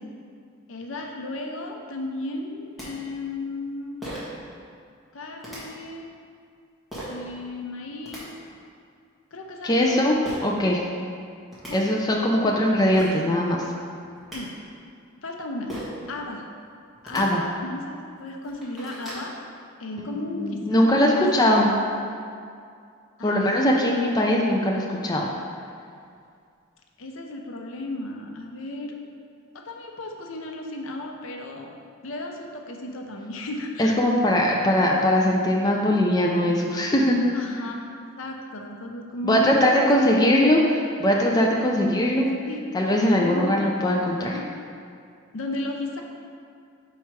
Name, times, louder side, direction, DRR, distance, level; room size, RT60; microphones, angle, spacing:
voice 1, 0.7-4.0 5.1-6.1 7.1-8.3 9.3-10.1 11.7-11.8 12.4-12.6 14.3-14.5 15.2-15.7 16.1-16.4 17.0-19.3 19.8-21.7 23.2-24.0 27.0-29.0 29.6-31.7 32.0-33.9 37.3-37.8 38.2-40.1 42.4-42.6 43.2-43.5 44.2-44.7 45.3-46.0, left 2 dB, 70° left, 2 dB, 0.7 m, -34 dB
sound 1, 2.5-2.6 2.8-2.9 4.0-4.4 5.4-5.6 6.9-7.2 7.8-8.2 10.2-10.4 11.2-11.3 11.5-11.7 12.6-12.7 12.9-13.2 14.0-14.4 15.7-16.0 17.0-17.2 17.9-18.0 18.4-19.3, equal, ahead, 1.5 m, -37 dB
voice 2, 9.6-10.2 10.4-10.8 11.7-13.6 17.1-17.4 20.0-20.1 20.3-21.7 23.2-25.3 33.8-37.2 39.2-42.3 42.7-44.4, left 1 dB, 20° left, -1 dB, 0.4 m, -21 dB
5.5 x 4.7 x 4.6 m, 2.3 s
head